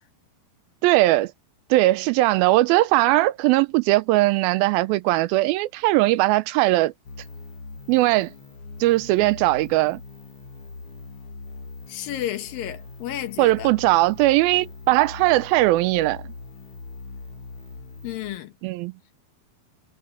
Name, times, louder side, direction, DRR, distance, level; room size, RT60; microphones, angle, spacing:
voice 1, 0.8-1.3 1.7-6.9 7.9-8.3 8.8-10.0 13.4-16.2 18.6-18.9, right 18 dB, 80° right, 2.4 m, -19 dB
sound 1, 7.0-18.4, left 3 dB, 40° left, 2.6 m, -41 dB
voice 2, 11.9-13.7 18.0-18.5, left 12 dB, 75° left, 2.9 m, -32 dB
omnidirectional pair, 4.3 m